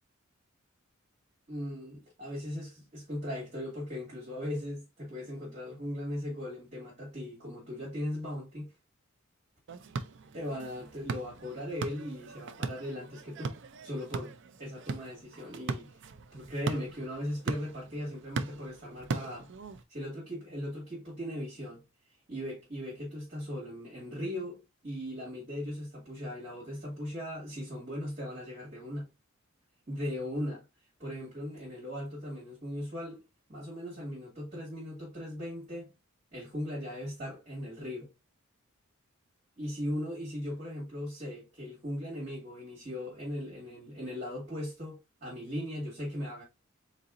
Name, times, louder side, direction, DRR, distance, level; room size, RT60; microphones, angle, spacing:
voice 1, 1.5-8.7 10.3-13.6 13.8-14.3 14.6-15.9 16.3-19.5 19.9-21.8 22.3-29.1 29.9-30.6 31.0-33.2 33.5-35.9 36.3-38.1 39.6-46.4, left 1 dB, 40° right, 2.6 m, -38 dB
sound 1, 9.7-19.8, right 4 dB, 60° right, 0.5 m, -39 dB
4.2 x 3.9 x 2.5 m
head